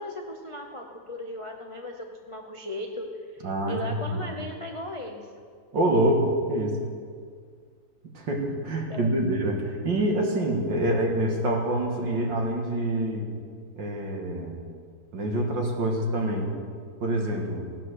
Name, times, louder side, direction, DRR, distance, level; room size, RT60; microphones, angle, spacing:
voice 1, 0.0-5.3 8.9-9.1, left 1 dB, 50° left, 2 dB, 0.3 m, -37 dB
voice 2, 3.4-4.2 5.7-6.8 8.1-13.3 13.8-14.6 15.1-16.5 17.0-17.7, right 1 dB, 60° right, 1 dB, 2.4 m, -26 dB
16.0 x 8.6 x 6.5 m, 2.1 s
omnidirectional pair, 2.2 m